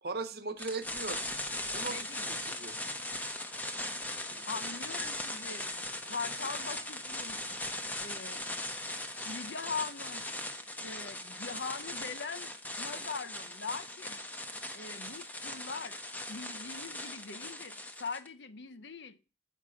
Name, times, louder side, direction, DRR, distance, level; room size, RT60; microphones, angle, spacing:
voice 1, 0.0-1.3 1.7-2.0 2.4-2.7 4.3-4.4, right 3 dB, 55° right, 1.0 m, -38 dB
sound 1, 0.6-18.3, left 1 dB, 10° left, 0.7 m, -39 dB
voice 2, 1.9-2.2 4.5-5.7 6.1-7.4 8.0-8.4 9.2-10.3 10.8-12.5 12.8-14.2 14.7-16.0 16.3-19.2, left 4 dB, 75° left, 0.8 m, -41 dB
7.3 x 5.5 x 5.0 m
head